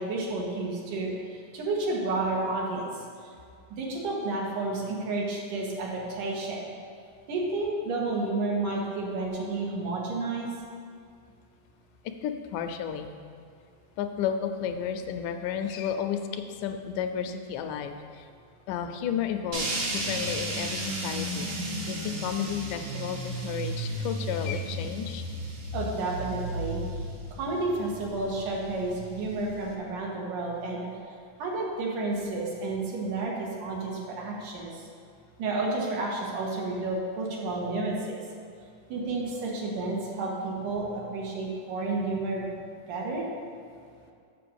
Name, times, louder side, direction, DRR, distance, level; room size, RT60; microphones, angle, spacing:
voice 1, 0.0-3.0 3.7-6.7 7.3-10.5 25.7-26.8 27.4-30.9 31.4-34.7 35.4-38.2 38.9-42.5 42.9-43.3, right 2 dB, 75° right, -3 dB, 2.9 m, -31 dB
voice 2, 12.1-13.1 14.0-18.3 18.7-25.2, left 8 dB, 80° left, 7 dB, 2.0 m, -32 dB
sound 1, 19.5-29.7, right 1 dB, 60° right, 1.3 m, -34 dB
7.6 x 6.4 x 7.0 m, 2.3 s
omnidirectional pair, 3.7 m